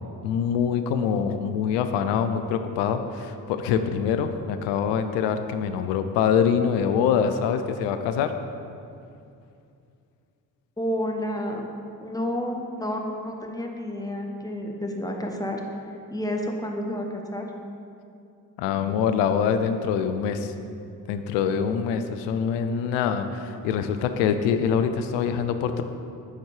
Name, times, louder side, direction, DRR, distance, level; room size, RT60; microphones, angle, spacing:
voice 1, 0.2-8.3 18.6-20.5 21.1-25.8, left 7 dB, 70° left, 9 dB, 0.6 m, -24 dB
voice 2, 10.8-11.7 12.0-15.6 16.1-17.4, left 1 dB, 10° left, 1 dB, 0.9 m, -30 dB
9.5 x 4.3 x 3.2 m, 2.5 s
hypercardioid pair, 40°, 45 cm